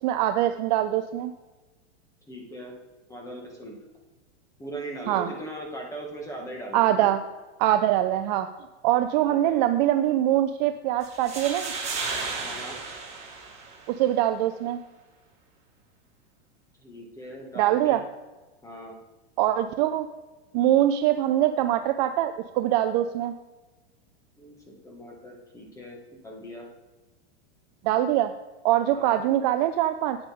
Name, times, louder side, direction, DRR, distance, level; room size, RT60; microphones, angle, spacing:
voice 1, 0.0-1.3 5.1-5.3 6.7-7.2 7.6-8.5 8.8-11.7 13.9-14.8 17.6-18.0 19.4-20.1 20.5-23.3 27.8-28.3 28.6-30.2, right 12 dB, 40° right, 9 dB, 0.5 m, -23 dB
voice 2, 2.3-2.7 3.1-3.8 4.6-7.1 9.2-9.6 12.4-12.8 16.8-18.0 18.6-19.0 24.4-26.7 28.9-29.2, right 1 dB, 10° left, 0 dB, 2.0 m, -40 dB
sound 1, 11.0-14.0, right 4 dB, 20° right, 2.7 m, -34 dB
9.3 x 8.7 x 3.7 m, 1.2 s
supercardioid pair, 140°, 34 cm